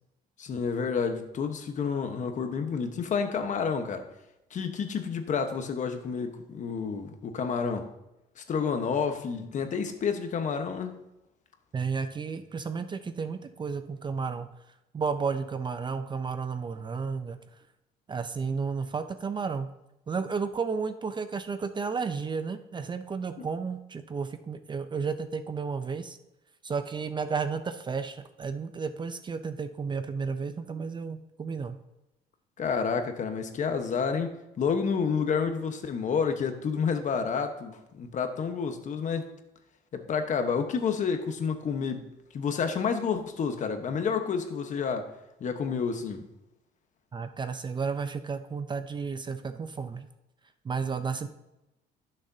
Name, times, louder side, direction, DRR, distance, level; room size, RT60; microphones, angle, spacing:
voice 1, 0.4-4.0 4.5-7.9 8.4-10.9 23.4-23.5 32.6-39.3 39.9-42.1 42.3-45.1 45.4-46.2, left 6 dB, 45° left, 7 dB, 1.2 m, -29 dB
voice 2, 11.7-14.5 14.9-17.4 18.1-19.7 20.1-26.2 26.6-31.8 47.1-50.1 50.6-51.3, right 5 dB, 25° right, 10 dB, 0.6 m, -32 dB
15.0 x 6.6 x 2.8 m, 0.92 s
cardioid pair, 110°, 17 cm